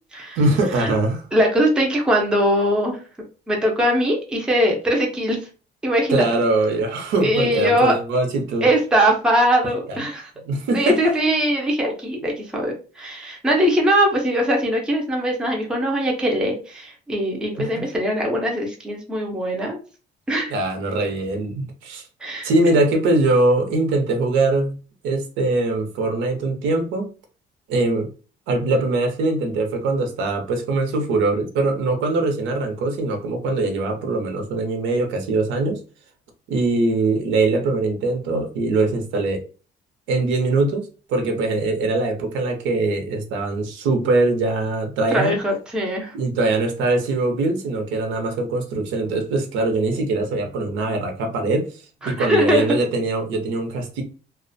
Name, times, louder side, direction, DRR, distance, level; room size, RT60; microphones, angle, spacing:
voice 1, 0.4-1.2 6.1-8.7 9.6-10.0 10.4-11.1 17.5-17.9 20.5-22.0 22.4-24.7 25.0-27.1 27.7-28.1 28.5-35.8 36.5-39.4 40.1-45.4 46.1-54.0, right 2 dB, 90° right, 0.7 m, -22 dB
voice 2, 1.3-3.0 3.5-5.4 5.8-6.2 7.2-8.0 8.6-10.3 10.7-19.8 20.3-20.5 22.2-22.5 45.1-46.1 52.0-52.6, equal, 5° right, 0.4 m, -21 dB
2.4 x 2.1 x 2.5 m
cardioid pair, 170°, 19 cm